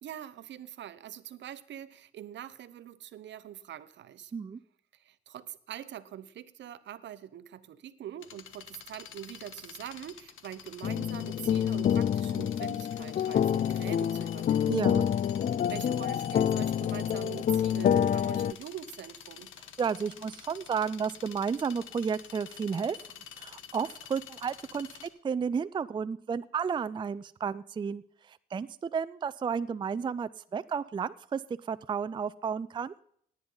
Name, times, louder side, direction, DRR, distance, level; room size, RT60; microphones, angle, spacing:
voice 1, 0.0-4.3 4.9-14.8 15.7-19.5, right 11 dB, 65° right, 14 dB, 0.8 m, -44 dB
sound 1, 8.2-25.1, left 9 dB, 85° left, 1.2 m, -48 dB
sound 2, 10.8-18.5, left 9 dB, 45° left, 0.4 m, -27 dB
voice 2, 14.7-15.1 19.8-23.0 23.4-28.0 28.3-32.9, right 6 dB, 25° right, 14 dB, 0.4 m, -32 dB
17.5 x 9.6 x 3.9 m, 0.63 s
cardioid pair, 90°, 20 cm